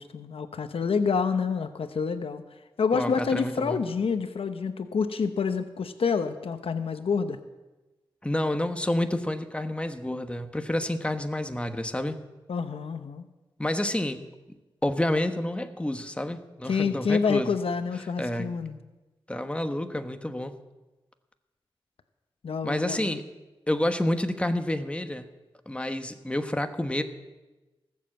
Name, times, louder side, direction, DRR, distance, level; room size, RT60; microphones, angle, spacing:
voice 1, 0.0-2.4 2.8-7.4 12.5-13.2 16.6-18.8 22.4-23.1, left 5 dB, 80° left, 9 dB, 0.8 m, -28 dB
voice 2, 2.9-3.8 8.2-12.2 13.6-14.3 14.8-17.5 18.2-18.6 19.3-20.5 22.6-23.2 23.7-25.2 25.7-27.0, left 1 dB, 10° left, 7 dB, 1.2 m, -29 dB
18.5 x 7.5 x 7.6 m, 1.1 s
cardioid pair, 55°, 10 cm